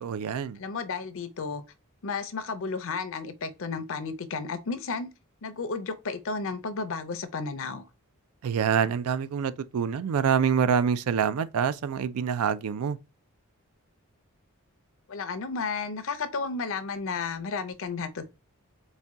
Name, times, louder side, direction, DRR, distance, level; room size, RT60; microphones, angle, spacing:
voice 1, 0.0-0.6 8.4-13.0, right 7 dB, 75° right, 0.4 m, -26 dB
voice 2, 0.6-1.6 2.0-5.1 5.4-7.9 15.1-18.3, left 4 dB, 60° left, 0.5 m, -33 dB
4.1 x 2.2 x 3.5 m
head